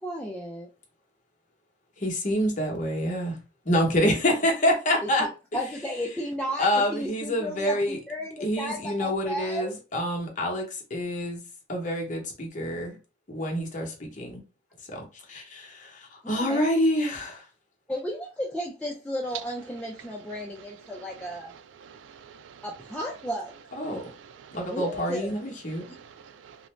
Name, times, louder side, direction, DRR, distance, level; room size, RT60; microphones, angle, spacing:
voice 1, 0.0-0.7 5.0-5.3 5.5-9.7 16.2-16.7 17.9-21.5 22.6-23.5 24.7-25.4, equal, 5° left, 0.3 m, -34 dB
voice 2, 2.0-3.4 3.7-5.2 6.6-8.0 8.4-11.4 11.7-13.0 13.3-14.4 14.9-15.0 15.3-17.4 23.8-24.0 24.5-25.8, equal, 40° left, 0.8 m, -27 dB
voice 3, 21.8-22.6 23.9-24.6 25.8-26.6, right 7 dB, 80° right, 0.3 m, -49 dB
2.5 x 2.0 x 3.1 m
head